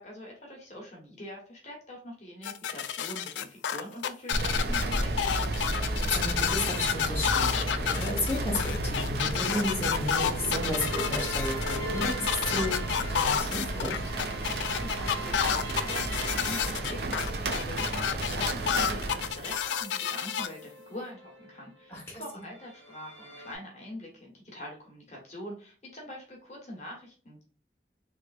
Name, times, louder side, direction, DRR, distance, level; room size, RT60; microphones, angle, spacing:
voice 1, 0.0-5.4 14.8-27.4, left 1 dB, 40° left, -1 dB, 1.1 m, -44 dB
sound 1, 2.4-20.5, left 8 dB, 85° left, 0.3 m, -30 dB
sound 2, 4.3-19.6, right 2 dB, 60° right, 0.6 m, -32 dB
voice 2, 6.0-14.0 21.9-22.2, left 1 dB, 15° left, -5 dB, 1.1 m, -33 dB
sound 3, 9.2-17.5 18.0-21.9 22.3-23.6, equal, 80° right, 1.3 m, -43 dB
3.4 x 3.2 x 2.4 m, 0.41 s
head